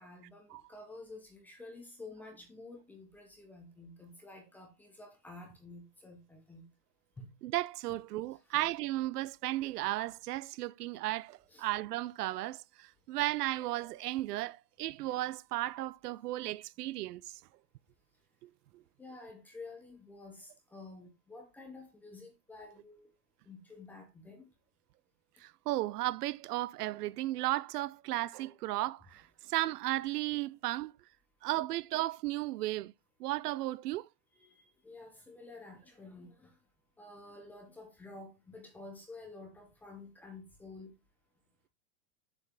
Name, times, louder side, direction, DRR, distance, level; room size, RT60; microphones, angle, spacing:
voice 1, 0.0-6.7 7.2-7.3 8.5-8.6 11.5-11.7 19.0-23.1 23.5-24.5 34.4-36.5 37.0-40.9, left 2 dB, 5° left, 0.5 m, -50 dB
voice 2, 7.4-17.2 18.4-18.5 25.4-30.9 31.4-32.9 33.2-34.1, right 16 dB, 80° right, 0.6 m, -35 dB
6.9 x 6.8 x 3.5 m
supercardioid pair, 165°, 46 cm